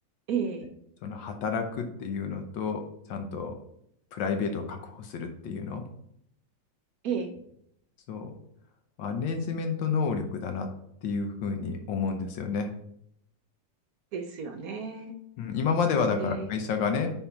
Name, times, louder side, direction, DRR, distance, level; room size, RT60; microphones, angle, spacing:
voice 1, 0.3-0.7 7.0-7.3 14.1-15.1 16.2-16.5, right 6 dB, 65° right, 5 dB, 1.0 m, -32 dB
voice 2, 1.0-2.8 3.1-3.5 4.1-5.8 8.1-8.3 9.0-10.7 11.0-12.7 15.4-17.1, left 5 dB, 90° left, 5 dB, 1.6 m, -30 dB
5.5 x 4.3 x 5.8 m, 0.72 s
omnidirectional pair, 2.0 m